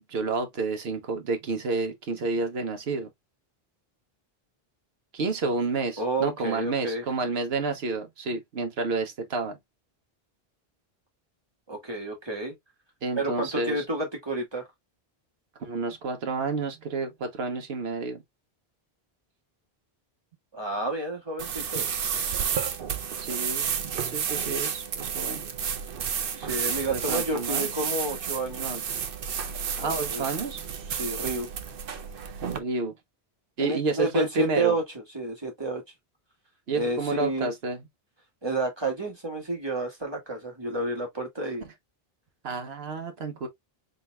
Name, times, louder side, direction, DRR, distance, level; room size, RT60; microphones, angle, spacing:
voice 1, 0.0-3.1 5.1-9.6 13.0-13.8 15.6-18.2 23.2-23.7 24.0-25.4 26.9-27.7 28.6-28.8 29.8-30.6 32.5-32.9 33.6-34.8 36.7-37.8 42.4-43.5, right 3 dB, 80° right, 1.2 m, -30 dB
voice 2, 6.0-7.0 11.7-12.5 13.1-14.7 20.5-21.9 26.3-28.6 29.8-30.3 30.9-31.5 33.6-35.8 36.7-37.5 38.4-41.7, right 2 dB, 25° right, 1.8 m, -30 dB
sound 1, 21.4-32.6, right 7 dB, 65° right, 0.9 m, -31 dB
4.2 x 3.9 x 2.3 m
omnidirectional pair, 1.0 m